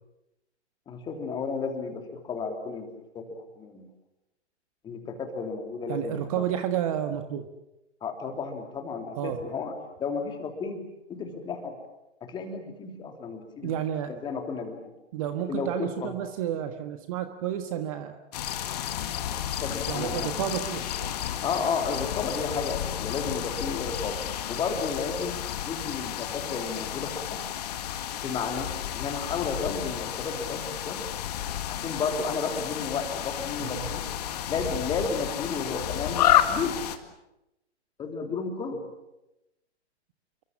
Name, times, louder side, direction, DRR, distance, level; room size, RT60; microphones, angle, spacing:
voice 1, 0.9-2.9 3.1-3.9 4.8-6.4 8.0-9.7 10.0-10.8 11.1-11.7 12.2-13.8 14.1-14.9 15.5-16.1 19.6-20.3 21.4-24.2 24.5-25.3 25.6-27.4 28.2-31.0 31.7-34.1 34.5-36.8 38.0-38.8, left 5 dB, 10° left, 4 dB, 3.2 m, -32 dB
voice 2, 5.9-7.4 9.2-9.4 13.6-14.1 15.1-18.2 19.9-21.1 33.6-33.9, right 10 dB, 30° right, 8 dB, 1.5 m, -31 dB
sound 1, 18.3-37.0, left 11 dB, 35° left, 2.0 m, -31 dB
28.5 x 24.0 x 7.4 m, 0.91 s
figure-of-eight pair, 130°, 35 cm